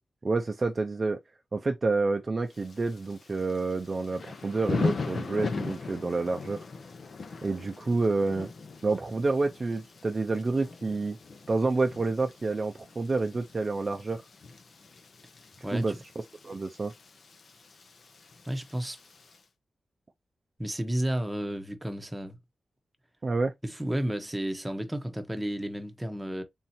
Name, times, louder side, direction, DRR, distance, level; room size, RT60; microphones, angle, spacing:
voice 1, 0.2-1.2 1.5-6.6 7.4-8.5 8.8-11.2 11.5-14.2 15.7-15.9 16.4-16.9 23.2-23.5, right 3 dB, 35° right, 0.5 m, -28 dB
Thunder / Rain, 2.5-19.4, left 4 dB, 60° left, 0.8 m, -39 dB
voice 2, 15.6-16.0 18.4-19.0 20.6-22.4 23.6-26.4, right 1 dB, 10° right, 0.8 m, -32 dB
3.6 x 2.8 x 4.3 m
wide cardioid pair, 115°, 0 cm